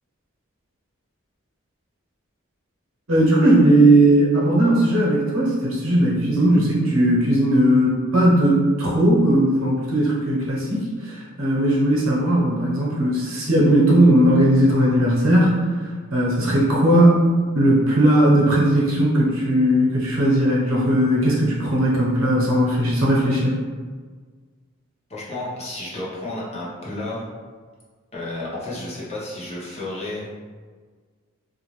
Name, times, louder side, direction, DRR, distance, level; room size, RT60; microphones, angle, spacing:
voice 1, 3.1-15.7 16.1-17.3 17.5-23.5, right 1 dB, 90° right, -4 dB, 0.9 m, -18 dB
voice 2, 25.1-27.2 28.1-30.3, left 2 dB, 30° left, -7 dB, 0.8 m, -31 dB
2.6 x 2.4 x 3.1 m, 1.5 s
head